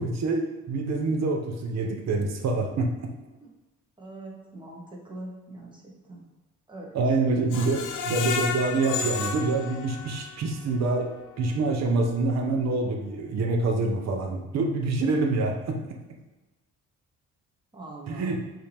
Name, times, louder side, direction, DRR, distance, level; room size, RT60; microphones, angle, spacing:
voice 1, 0.0-2.9 6.9-11.1 11.4-16.0 18.1-18.4, right 3 dB, 60° right, 2 dB, 0.8 m, -26 dB
voice 2, 4.0-6.3 6.7-7.0 7.5-7.7 17.7-18.4, right 2 dB, 15° right, -2 dB, 1.2 m, -42 dB
Screech, 7.5-10.5 10.9-11.0 11.4-11.5, left 6 dB, 85° left, 0.5 m, -32 dB
5.3 x 2.8 x 3.4 m, 1.2 s
cardioid pair, 90°, 30 cm